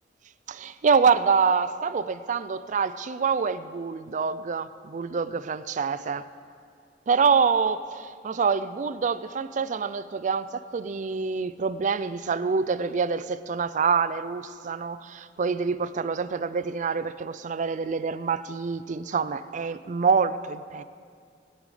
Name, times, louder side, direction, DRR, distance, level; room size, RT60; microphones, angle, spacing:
voice 1, 0.5-6.2 7.1-20.8, right 5 dB, 45° right, 0.4 m, -26 dB
20.0 x 9.1 x 4.9 m
head